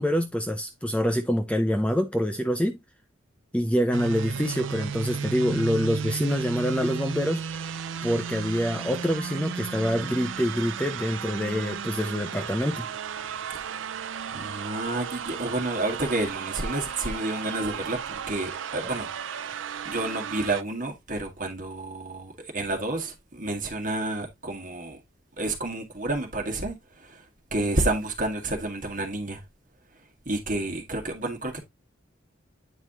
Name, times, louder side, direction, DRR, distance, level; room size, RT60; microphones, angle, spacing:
voice 1, 0.0-2.8 3.5-7.4 8.0-12.9, equal, 5° left, 0.5 m, -26 dB
sound 1, 3.9-20.6, right 7 dB, 65° right, 0.4 m, -34 dB
voice 2, 13.5-25.0 25.4-29.4 30.3-31.6, right 2 dB, 40° right, 1.8 m, -30 dB
9.2 x 4.7 x 2.9 m
head